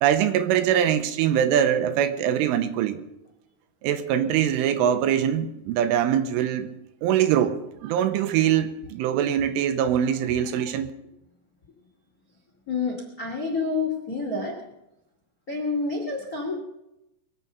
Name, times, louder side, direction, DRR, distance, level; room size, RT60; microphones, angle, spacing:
voice 1, 0.0-3.0 3.8-6.7 7.0-7.6 7.8-10.9, right 9 dB, 85° right, 3.2 m, -23 dB
voice 2, 12.7-14.6 15.5-16.6, left 4 dB, 60° left, 0.9 m, -28 dB
22.5 x 7.7 x 6.8 m
omnidirectional pair, 5.9 m